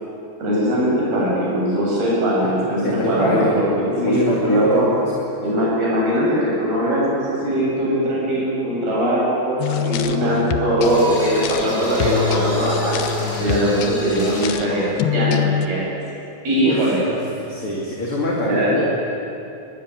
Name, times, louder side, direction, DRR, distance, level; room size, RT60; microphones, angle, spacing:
voice 1, 0.4-4.8 5.4-13.0 13.4-15.8 16.4-17.0 18.4-18.8, equal, 80° right, -5 dB, 9.7 m, -20 dB
voice 2, 2.8-3.6 3.9-5.4 11.5-11.6 13.7-14.0 16.6-17.2 17.4-18.8, left 1 dB, 35° left, -3 dB, 3.3 m, -26 dB
sound 1, 9.6-15.7, left 9 dB, 90° left, 3.0 m, -25 dB
sound 2, 10.8-14.6, right 1 dB, 15° left, 7.2 m, -28 dB
24.0 x 20.5 x 9.9 m, 2.8 s
omnidirectional pair, 4.3 m